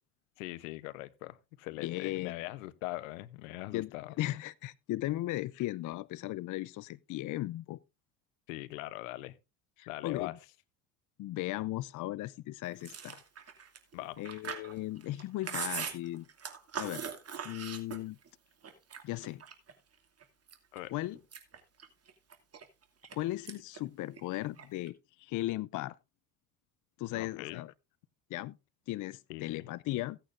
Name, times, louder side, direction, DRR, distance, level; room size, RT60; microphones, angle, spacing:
voice 1, 0.4-4.1 8.5-9.4 9.9-10.3 13.9-14.2 20.7-20.9 27.1-27.6 29.3-29.7, left 18 dB, 85° left, 0.9 m, -41 dB
voice 2, 1.8-2.4 3.7-3.9 4.2-7.8 9.8-10.4 11.2-13.2 14.2-16.3 16.8-17.0 17.4-18.2 19.0-19.4 20.9-21.2 23.1-26.0 27.0-27.7 28.3-28.6 28.9-30.2, left 16 dB, 50° left, 0.6 m, -37 dB
Chewing mastication, 12.8-18.3 18.6-19.7 20.2-20.8 21.2-23.2 23.5-23.8 24.1-24.9, right 7 dB, 40° right, 2.6 m, -41 dB
16.5 x 9.0 x 2.6 m
supercardioid pair, 75°, 39 cm